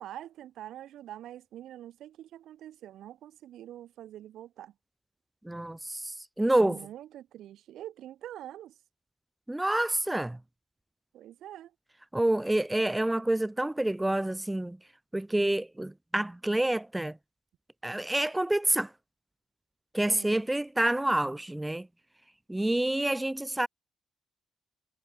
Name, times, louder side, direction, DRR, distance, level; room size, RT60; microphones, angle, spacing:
voice 1, 0.0-4.7 6.6-8.7 11.1-11.7 20.1-20.4, right 12 dB, 80° right, 1.4 m, -45 dB
voice 2, 5.4-6.8 9.5-10.4 12.1-14.8 15.1-17.2 17.8-18.9 19.9-21.9 22.5-23.7, right 1 dB, 10° right, 0.5 m, -28 dB
cardioid pair, 90°, 0 cm